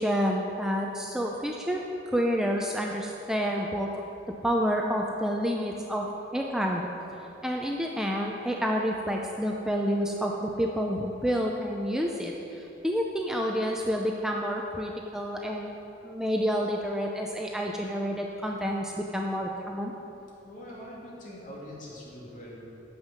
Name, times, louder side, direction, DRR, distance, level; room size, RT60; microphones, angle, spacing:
voice 1, 0.0-1.8 2.1-3.9 4.4-6.1 6.3-6.8 7.4-15.8 16.0-19.9, equal, 5° right, 0 dB, 0.5 m, -29 dB
voice 2, 20.4-22.6, equal, 45° left, -5 dB, 2.5 m, -43 dB
9.5 x 7.4 x 6.4 m, 3.0 s
head